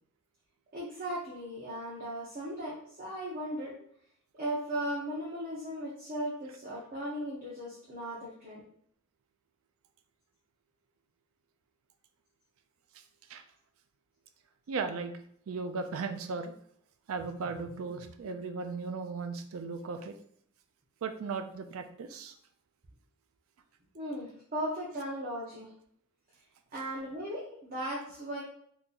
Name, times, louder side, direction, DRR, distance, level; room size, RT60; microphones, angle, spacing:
voice 1, 0.7-3.8 4.4-8.6 23.9-25.7 26.7-28.4, right 1 dB, 45° right, -6 dB, 0.8 m, -37 dB
voice 2, 14.7-15.1 15.5-16.5 17.1-20.1 21.0-22.3, right 4 dB, 85° right, 7 dB, 0.4 m, -36 dB
3.8 x 2.8 x 2.5 m, 0.66 s
head